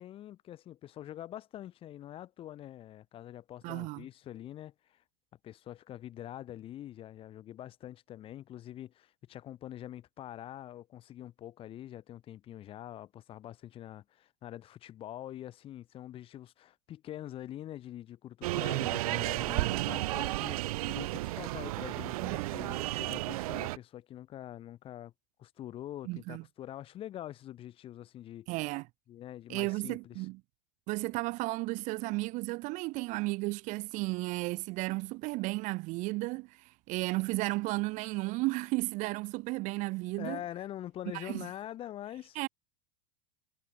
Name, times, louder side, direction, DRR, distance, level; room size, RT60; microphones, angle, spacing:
voice 1, 0.0-5.0 5.4-25.1 25.4-28.5 29.1-30.3 40.2-42.4, left 12 dB, 30° left, 1.5 m, -45 dB
voice 2, 3.6-4.1 22.2-22.5 26.1-26.4 28.5-28.9 29.5-30.4 30.9-40.4 41.1-41.5 42.4-42.5, right 23 dB, 40° right, 0.8 m, -34 dB
sound 1, 18.4-23.8, right 19 dB, 75° right, 0.9 m, -33 dB
supercardioid pair, 150°, 19 cm